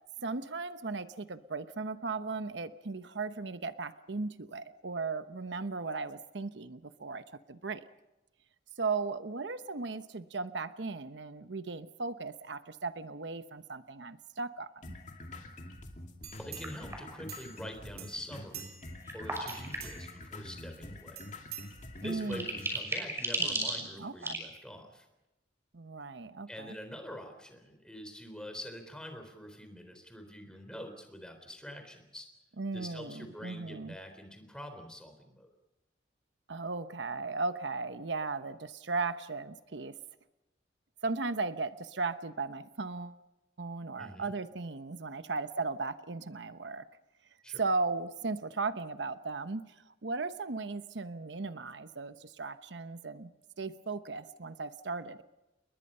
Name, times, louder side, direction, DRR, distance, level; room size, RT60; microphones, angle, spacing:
voice 1, 0.2-7.8 8.8-15.0 22.0-22.5 23.4-24.4 25.7-26.7 32.6-34.0 36.5-40.0 41.0-43.2 43.6-46.8 47.6-49.6 50.0-53.3 53.6-55.2, right 3 dB, 85° right, 11 dB, 0.9 m, -36 dB
sound 1, 14.8-22.8, left 1 dB, 40° left, 2.6 m, -46 dB
sound 2, 16.2-17.7 18.0-19.0 19.4-20.2 21.2-22.3 22.7-22.8, right 9 dB, 60° right, 2.7 m, -47 dB
voice 2, 16.4-18.7 19.1-21.2 22.0-25.1 26.5-32.3 32.7-35.5 44.0-44.3 47.4-47.6, equal, 5° left, 6 dB, 3.8 m, -45 dB
sound 3, 16.6-17.2 18.8-20.2 21.6-21.7 22.0-24.4, right 2 dB, 15° right, 6.0 m, -35 dB
29.5 x 21.5 x 5.6 m, 0.96 s
head